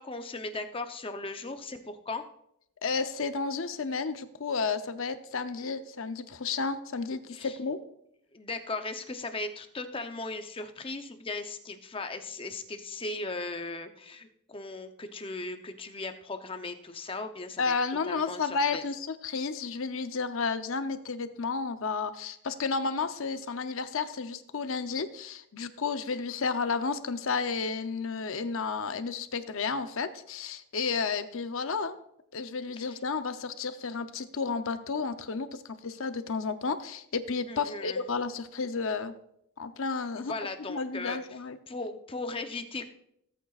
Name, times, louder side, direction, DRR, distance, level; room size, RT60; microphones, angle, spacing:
voice 1, 0.0-2.2 7.3-7.6 8.3-17.7 18.1-18.8 32.8-33.0 37.5-38.0 40.2-41.2 41.7-42.9, left 3 dB, 25° left, 7 dB, 0.7 m, -37 dB
voice 2, 2.8-7.8 17.6-32.0 32.3-39.1 39.6-40.3 40.7-41.6, left 4 dB, 60° left, 10 dB, 0.7 m, -32 dB
17.5 x 8.5 x 2.4 m, 0.75 s
head